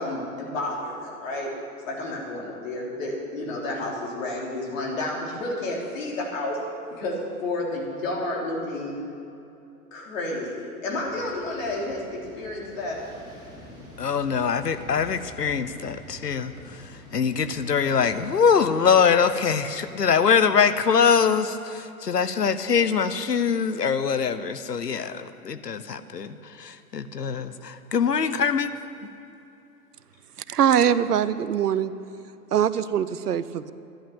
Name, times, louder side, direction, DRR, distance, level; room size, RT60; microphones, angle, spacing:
voice 1, 0.0-1.5 1.8-6.6 6.9-9.0 9.9-13.0 19.5-19.7, left 2 dB, 55° left, -1 dB, 3.7 m, -31 dB
sound 1, 11.0-20.7, left 1 dB, 10° right, 3.5 m, -47 dB
voice 2, 14.0-16.8 17.1-28.7, left 6 dB, 85° left, 12 dB, 0.9 m, -23 dB
voice 3, 30.5-31.9 32.5-33.7, right 9 dB, 75° right, 15 dB, 0.8 m, -22 dB
13.0 x 11.0 x 6.9 m, 2.8 s
figure-of-eight pair, 110°, 47 cm